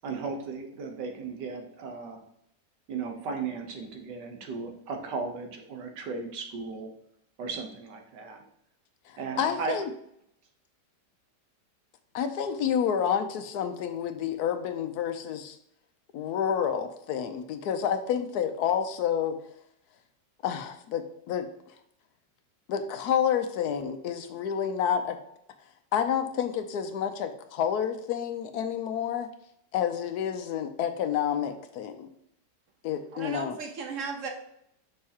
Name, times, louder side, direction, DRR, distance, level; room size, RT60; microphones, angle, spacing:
voice 1, 0.0-2.2 2.9-6.9 7.4-8.5 9.2-9.8, right 4 dB, 90° right, 4 dB, 1.7 m, -36 dB
voice 2, 9.1-9.9 12.1-15.6 16.1-19.4 20.4-21.5 22.7-25.2 25.9-29.3 29.7-32.1 32.8-33.6, left 8 dB, 75° left, 9 dB, 1.1 m, -29 dB
voice 3, 33.1-34.3, right 5 dB, 55° right, 3 dB, 1.2 m, -35 dB
6.6 x 5.4 x 2.8 m, 0.75 s
omnidirectional pair, 1.8 m